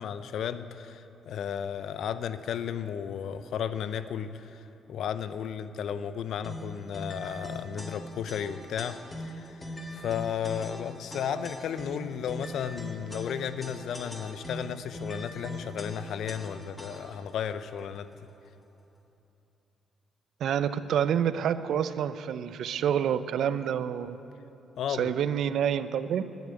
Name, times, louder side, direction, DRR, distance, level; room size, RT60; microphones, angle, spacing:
voice 1, 0.0-4.6 4.9-18.1 24.8-25.1, left 8 dB, 70° left, 12 dB, 0.5 m, -34 dB
sound 1, 6.4-17.3, left 1 dB, 10° left, 1.7 m, -41 dB
voice 2, 20.4-24.2 24.9-26.2, right 9 dB, 70° right, 13 dB, 0.5 m, -28 dB
10.5 x 9.5 x 9.2 m, 2.9 s
cardioid pair, 90°, 0 cm